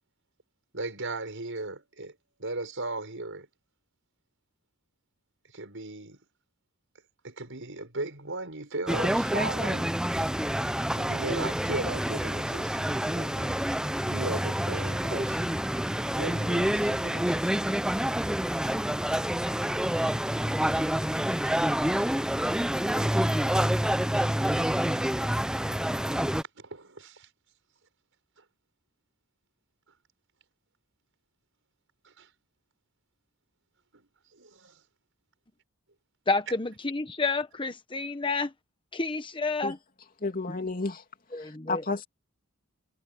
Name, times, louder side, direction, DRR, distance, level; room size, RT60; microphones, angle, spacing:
voice 1, 0.7-2.1 2.4-3.5 5.5-6.2 7.2-9.9 10.9-13.6 14.0-15.6 16.2-17.8 21.2-21.4 26.6-27.3 32.1-32.3 33.9-34.0 34.3-34.8, right 2 dB, 60° right, 7.2 m, -37 dB
sound 1, 8.9-26.4, equal, 5° right, 0.7 m, -27 dB
voice 2, 36.3-38.5 38.9-39.8 40.5-40.6 41.3-41.8, left 3 dB, 25° left, 1.2 m, -30 dB
voice 3, 40.2-41.0 41.4-42.1, left 3 dB, 40° left, 2.9 m, -31 dB
head